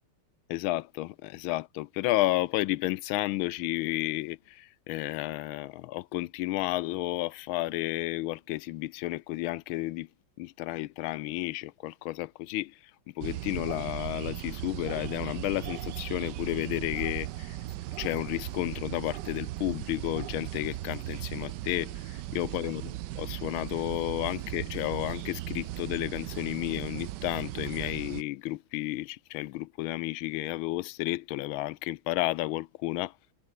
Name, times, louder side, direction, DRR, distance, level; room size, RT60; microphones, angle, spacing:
voice 1, 0.5-10.1 10.4-12.7 13.2-17.6 18.0-33.1, left 17 dB, 80° left, 1.4 m, -32 dB
sound 1, 13.2-28.2, right 15 dB, 70° right, 1.1 m, -37 dB
omnidirectional pair, 2.3 m